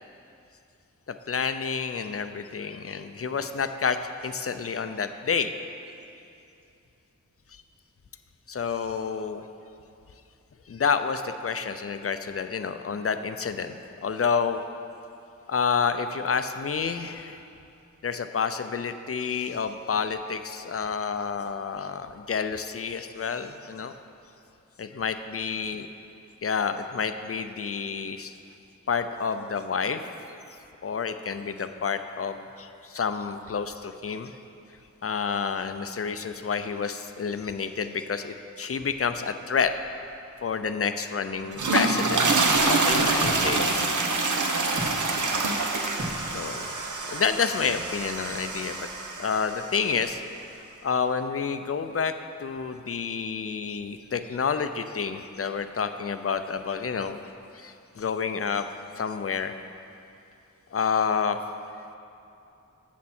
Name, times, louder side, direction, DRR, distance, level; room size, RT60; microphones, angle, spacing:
voice 1, 1.3-5.5 8.5-9.4 10.7-13.8 14.0-14.6 15.5-17.4 18.0-23.9 24.8-25.9 26.4-28.3 28.9-30.1 30.8-34.3 35.0-39.7 40.4-42.3 42.7-44.0 45.4-45.5 46.0-46.7 47.0-48.9 49.2-50.2 50.8-52.1 52.4-57.2 57.5-58.7 59.0-59.6 60.7-61.4, left 6 dB, 45° left, 9 dB, 0.6 m, -29 dB
sound 1, 39.5-40.1 40.5-40.6 41.4-43.5 44.8-45.0 46.0-46.3 46.6-46.9 47.2-47.3, right 1 dB, 50° right, 2.1 m, -38 dB
sound 2, 41.4-49.7, right 3 dB, 70° right, 0.9 m, -26 dB
13.0 x 7.3 x 4.3 m, 2.7 s
wide cardioid pair, 80°, 31 cm